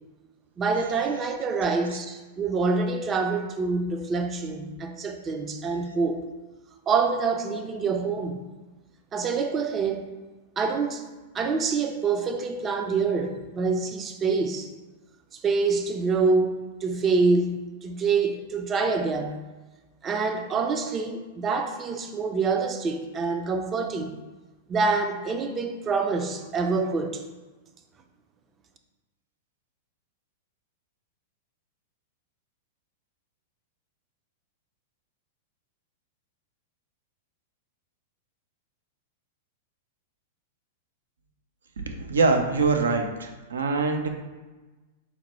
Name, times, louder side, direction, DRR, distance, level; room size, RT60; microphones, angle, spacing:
voice 1, 0.6-6.2 6.9-8.5 9.1-10.1 10.6-11.0 11.3-14.7 15.3-19.4 20.0-24.2 24.7-27.2, right 4 dB, 25° right, 6 dB, 0.4 m, -26 dB
voice 2, 42.1-44.1, right 3 dB, 80° right, 4 dB, 0.5 m, -23 dB
4.2 x 2.1 x 4.2 m, 1.2 s
hypercardioid pair, 105°, 0 cm